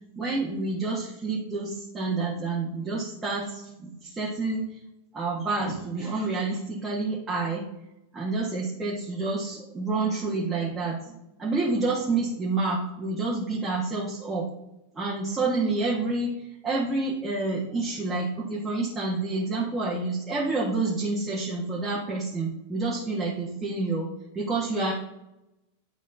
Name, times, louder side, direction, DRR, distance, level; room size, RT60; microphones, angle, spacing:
voice 1, 0.2-4.6 5.1-7.7 8.1-11.0 11.4-14.5 14.9-16.3 16.6-24.1 24.3-24.9, right 3 dB, 15° right, -5 dB, 1.5 m, -28 dB
11.0 x 4.0 x 2.7 m, 0.87 s
figure-of-eight pair, 90°, 0 cm